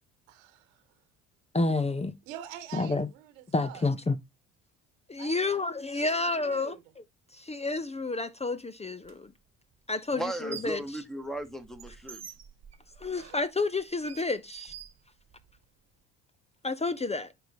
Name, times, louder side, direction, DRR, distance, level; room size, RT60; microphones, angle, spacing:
voice 1, 0.3-0.8 2.3-3.9 5.2-5.6 5.9-6.8, right 12 dB, 85° right, 1.5 m, -46 dB
voice 2, 1.5-2.1 2.7-3.1 3.5-4.2 5.1-6.8 7.3-9.3 9.9-10.8 13.0-14.7 16.6-17.3, left 3 dB, 15° left, 0.7 m, -30 dB
sound 1, 9.0-9.1 10.2-10.9 11.2-15.6, right 8 dB, 45° right, 1.4 m, -47 dB
voice 3, 10.1-12.3, right 1 dB, ahead, 1.4 m, -36 dB
9.0 x 5.2 x 3.0 m
hypercardioid pair, 65°, 38 cm